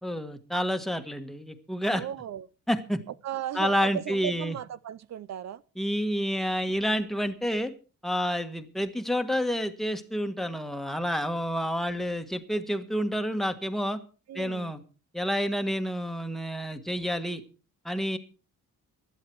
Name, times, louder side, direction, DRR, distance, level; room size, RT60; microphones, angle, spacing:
voice 1, 0.0-2.1 2.7-3.0 3.5-4.6 5.8-7.7 8.0-14.0 14.3-14.8 15.1-17.4 17.8-18.2, equal, ahead, 1.4 m, -29 dB
voice 2, 1.9-2.5 3.2-5.6 14.3-14.7, right 10 dB, 55° right, 0.6 m, -36 dB
16.5 x 11.5 x 4.6 m
cardioid pair, 145°, 33 cm